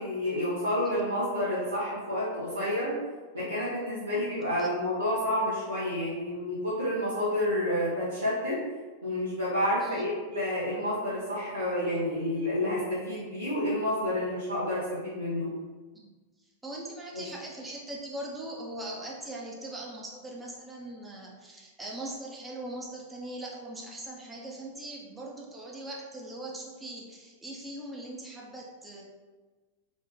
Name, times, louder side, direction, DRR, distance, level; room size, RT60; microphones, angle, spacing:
voice 1, 0.0-2.9 3.3-8.6 9.0-15.5 17.1-17.2, left 1 dB, 90° right, -12 dB, 1.1 m, -29 dB
voice 2, 16.6-29.0, right 1 dB, 10° right, -3 dB, 0.9 m, -40 dB
3.8 x 2.6 x 3.6 m, 1.3 s
figure-of-eight pair, 95°, 0 cm